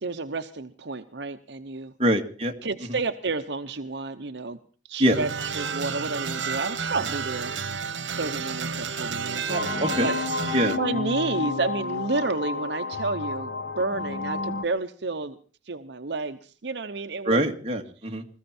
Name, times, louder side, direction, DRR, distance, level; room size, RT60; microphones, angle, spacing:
voice 1, 0.0-1.9 2.6-4.6 4.9-7.5 8.1-10.2 10.8-15.4 15.7-17.4, right 3 dB, 65° right, 8 dB, 0.9 m, -30 dB
voice 2, 2.0-2.5 5.0-5.2 10.0-10.1 10.5-10.8 17.3-18.2, equal, 35° right, 3 dB, 1.9 m, -23 dB
sound 1, 5.1-10.8, right 6 dB, 90° right, 1.1 m, -31 dB
Bowed string instrument, 5.6-10.3, right 1 dB, 15° left, 4.9 m, -52 dB
sound 2, 9.5-14.6, left 4 dB, 75° left, 0.9 m, -30 dB
21.0 x 15.0 x 4.3 m, 0.39 s
head